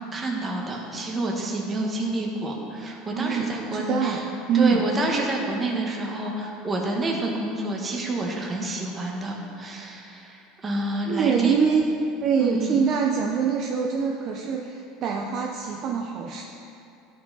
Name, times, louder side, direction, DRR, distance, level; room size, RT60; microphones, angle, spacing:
voice 1, 0.1-4.2 4.5-11.5 12.4-12.8, right 2 dB, 20° right, 0 dB, 1.0 m, -28 dB
voice 2, 3.1-4.2 4.5-4.8 11.1-11.8 12.2-16.4, right 6 dB, 40° right, 1 dB, 0.5 m, -24 dB
11.5 x 4.8 x 3.9 m, 2.6 s
cardioid pair, 155°, 0 cm